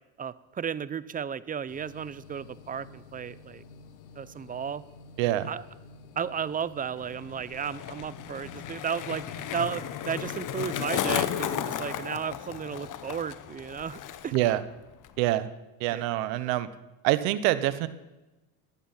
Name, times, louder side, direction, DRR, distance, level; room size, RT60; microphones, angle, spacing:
voice 1, 0.2-3.6 4.2-4.8 5.5-5.6 6.2-9.2 9.5-14.3 15.9-16.0, right 7 dB, 20° right, 18 dB, 0.5 m, -34 dB
sound 1, 1.7-12.0, left 3 dB, 85° left, 1.4 m, -50 dB
voice 2, 5.2-5.5 14.3-14.6 15.2-15.5 15.8-16.7 17.0-17.9, right 15 dB, 75° right, 14 dB, 0.9 m, -25 dB
Skateboard, 7.0-14.5 14.8-15.3, left 10 dB, 50° left, 1.0 m, -34 dB
15.0 x 10.5 x 5.7 m, 1.1 s
supercardioid pair, 90°, 41 cm